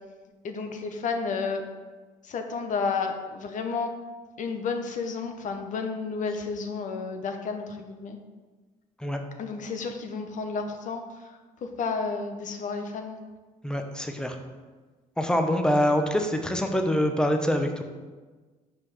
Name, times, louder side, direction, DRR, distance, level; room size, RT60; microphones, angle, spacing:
voice 1, 0.4-1.6 2.2-3.9 4.4-8.2 9.4-11.3 11.6-13.2, left 4 dB, 55° left, 5 dB, 1.0 m, -31 dB
voice 2, 13.6-14.4 15.2-17.8, equal, 5° left, 5 dB, 0.9 m, -25 dB
5.5 x 4.9 x 6.5 m, 1.3 s
cardioid pair, 105°, 15 cm